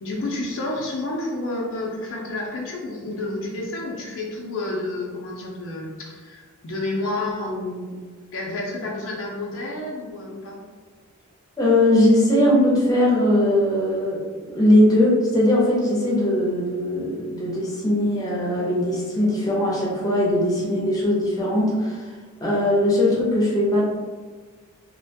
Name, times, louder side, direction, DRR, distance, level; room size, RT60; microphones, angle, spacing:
voice 1, 0.0-8.0 8.3-10.6, left 2 dB, 65° left, -2 dB, 0.5 m, -30 dB
voice 2, 11.6-22.1 22.4-23.8, left 1 dB, 15° left, -5 dB, 0.6 m, -20 dB
2.4 x 2.1 x 2.7 m, 1.4 s
head